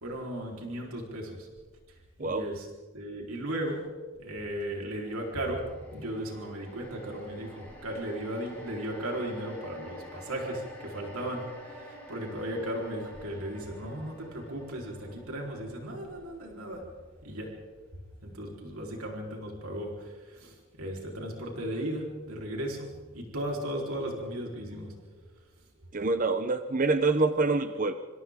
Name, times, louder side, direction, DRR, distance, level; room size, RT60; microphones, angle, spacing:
voice 1, 0.0-1.5 1.9-2.7 2.9-3.8 4.2-5.7 5.9-16.8 17.2-17.5 18.2-25.3, right 1 dB, 85° right, -1 dB, 4.1 m, -36 dB
sound 1, 5.0-19.4 19.7-19.9, equal, 5° left, 6.5 m, -50 dB
voice 2, 25.9-27.9, right 3 dB, 35° right, 9 dB, 0.8 m, -26 dB
27.0 x 26.5 x 3.7 m, 1.4 s
head